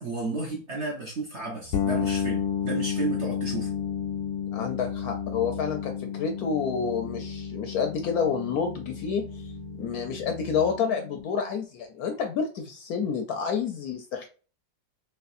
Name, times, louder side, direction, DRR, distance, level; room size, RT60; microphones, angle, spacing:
voice 1, 0.0-3.7, right 3 dB, 55° right, 0.8 m, -32 dB
sound 1, 1.6-10.7, right 9 dB, 90° right, 1.4 m, -46 dB
sound 2, 1.7-11.4, left 8 dB, 85° left, 1.3 m, -32 dB
voice 2, 4.5-9.5 9.8-14.3, left 6 dB, 70° left, 0.9 m, -29 dB
3.3 x 3.0 x 2.5 m
omnidirectional pair, 2.0 m